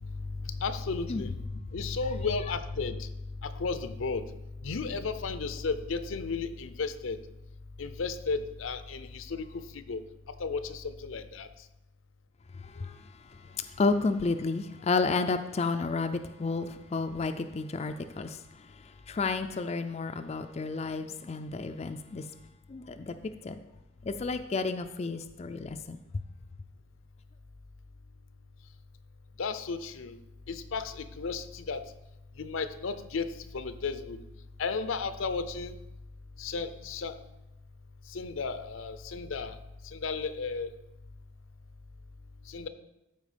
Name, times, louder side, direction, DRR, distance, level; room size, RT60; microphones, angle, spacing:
voice 1, 0.0-4.3 4.6-7.2 7.8-9.5 9.7-10.0 10.4-11.5 29.4-30.2 30.5-31.8 32.4-34.2 34.6-35.7 36.4-37.2 38.1-39.5 39.9-40.7 42.5-42.7, left 4 dB, 75° left, 11 dB, 0.6 m, -34 dB
voice 2, 12.6-22.3 22.7-23.6 24.0-26.0, left 4 dB, 30° left, 7 dB, 0.4 m, -32 dB
13.5 x 4.5 x 5.0 m, 0.94 s
head